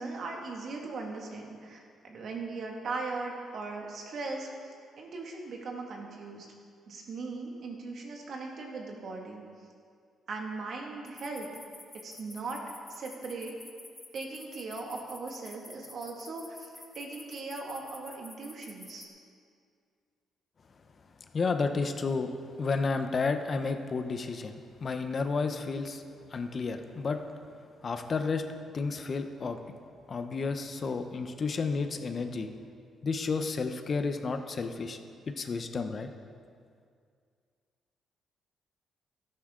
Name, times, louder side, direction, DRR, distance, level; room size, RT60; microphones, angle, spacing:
voice 1, 0.0-6.5 6.9-9.4 10.3-11.5 12.0-12.6 12.9-13.5 14.1-19.0, right 3 dB, 60° right, 0 dB, 2.1 m, -39 dB
sound 1, 11.1-19.1, left 2 dB, 20° left, 1.4 m, -49 dB
voice 2, 21.3-22.3 22.6-26.0 26.3-27.2 27.8-28.4 28.7-29.6 30.1-32.5 33.0-35.0 35.4-36.1, left 4 dB, 40° left, 7 dB, 0.8 m, -31 dB
13.5 x 11.0 x 3.8 m, 2.2 s
cardioid pair, 90°, 0 cm